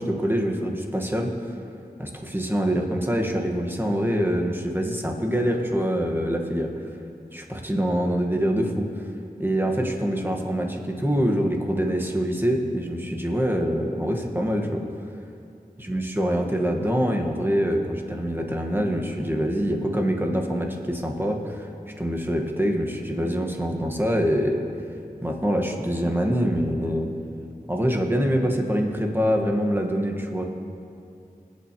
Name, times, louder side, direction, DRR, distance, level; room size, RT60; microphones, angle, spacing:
voice 1, 0.0-1.3 2.0-6.7 7.3-8.9 9.4-14.8 15.8-21.7 22.0-24.6 25.2-27.1 27.7-30.4, equal, 15° right, 1 dB, 1.5 m, -25 dB
25.5 x 8.6 x 3.1 m, 2.5 s
wide cardioid pair, 45°, 15 cm